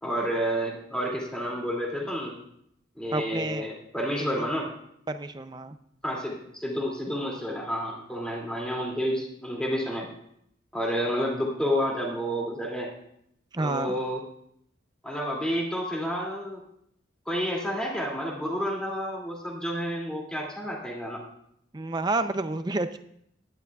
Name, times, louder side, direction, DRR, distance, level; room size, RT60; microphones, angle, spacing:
voice 1, 0.0-2.4 3.0-4.7 6.0-10.1 10.7-12.9 13.6-14.2 15.0-16.6 17.3-21.2, equal, 5° left, -2 dB, 2.5 m, -30 dB
voice 2, 3.1-3.7 4.4-4.5 5.1-5.8 13.5-14.0 21.7-23.0, right 2 dB, 20° right, 9 dB, 0.5 m, -29 dB
17.0 x 11.0 x 2.4 m, 0.72 s
head